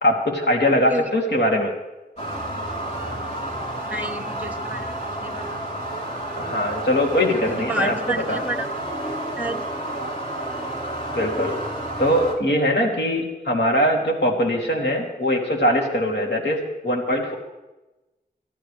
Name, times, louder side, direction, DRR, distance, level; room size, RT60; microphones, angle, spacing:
voice 1, 0.0-1.7 6.4-8.4 11.1-11.6 12.0-17.3, equal, 75° left, 0 dB, 2.9 m, -21 dB
sound 1, 2.2-12.4, right 1 dB, 40° left, 3.4 m, -30 dB
voice 2, 3.9-5.6 7.3-8.7 9.4-9.6, right 1 dB, 10° right, 8 dB, 1.3 m, -30 dB
25.0 x 12.5 x 3.4 m, 1.0 s
wide cardioid pair, 75°, 17 cm